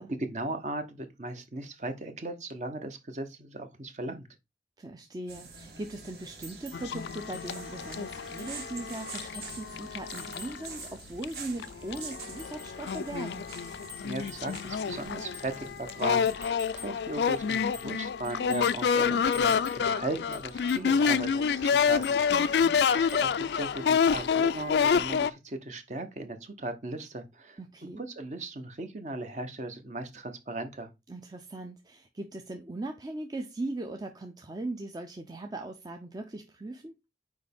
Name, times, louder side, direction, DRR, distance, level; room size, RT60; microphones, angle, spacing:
voice 1, 0.1-4.3 14.0-22.6 22.9-27.6 28.0-30.9, right 2 dB, 40° right, 0.8 m, -37 dB
voice 2, 4.8-13.5 22.3-22.9 27.6-28.0 31.1-36.9, right 2 dB, 20° right, 0.5 m, -39 dB
sound 1, 5.3-16.4, right 4 dB, 60° right, 1.3 m, -46 dB
sound 2, 6.4-6.9 7.3-7.5 7.9-8.0 8.4-8.6 9.2-9.7 10.2-11.5 11.9-12.8 13.5-14.7 15.3-15.5 16.2-17.0 17.3-18.0 18.2-18.9 19.3-19.9 20.3-20.9 21.9-22.2 23.1-23.4 23.6-23.8, left 2 dB, 85° right, 2.4 m, -49 dB
sound 3, 6.7-10.7 11.2-11.3 11.6-25.3, left 6 dB, 70° left, 0.3 m, -28 dB
6.3 x 4.7 x 3.5 m
head